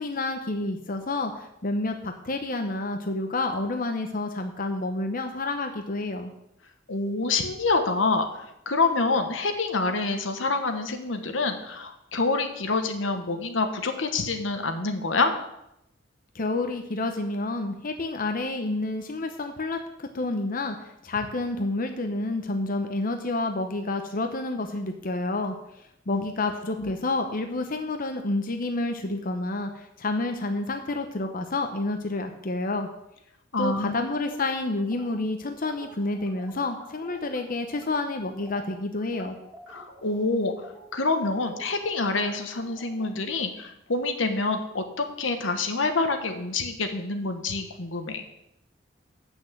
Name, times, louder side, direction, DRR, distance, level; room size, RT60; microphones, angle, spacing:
voice 1, 0.0-6.3 16.3-32.9 33.6-39.4, left 2 dB, 50° left, 5 dB, 0.8 m, -29 dB
voice 2, 6.9-15.3 26.1-26.2 26.8-26.9 33.5-34.0 39.7-48.2, left 3 dB, 80° left, 6 dB, 1.2 m, -27 dB
sound 1, 34.2-37.4 37.7-37.9 38.2-43.0, right 1 dB, 10° right, 2.4 m, -49 dB
7.9 x 6.3 x 7.8 m, 0.83 s
head